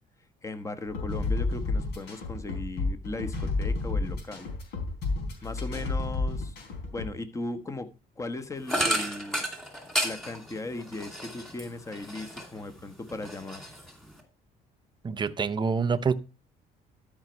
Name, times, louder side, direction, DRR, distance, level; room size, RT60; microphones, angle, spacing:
voice 1, 0.4-4.5 5.4-6.6 6.9-7.9 8.2-9.4 10.0-13.6, left 2 dB, 20° left, 1.2 m, -37 dB
sound 1, 0.9-7.1, left 3 dB, 75° left, 4.0 m, -30 dB
sound 2, 8.7-12.7 13.0-14.2, equal, ahead, 2.5 m, -32 dB
voice 2, 15.0-16.1, right 5 dB, 25° right, 0.7 m, -26 dB
12.5 x 5.2 x 4.5 m
cardioid pair, 110°, 17 cm